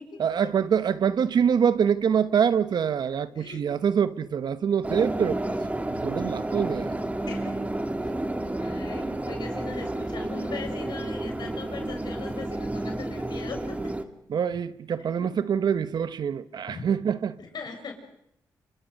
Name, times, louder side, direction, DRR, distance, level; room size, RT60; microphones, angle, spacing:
voice 1, 0.2-5.5 5.9-7.0 14.3-17.4, right 7 dB, 70° right, 1.1 m, -25 dB
sound 1, 4.8-14.0, right 1 dB, 20° right, 2.4 m, -31 dB
voice 2, 7.3-7.6 8.0-8.1 8.6-13.8 15.1-15.3 16.7-16.8 17.4-17.9, left 5 dB, 70° left, 6.3 m, -39 dB
29.5 x 26.0 x 6.6 m
cardioid pair, 60°, 8 cm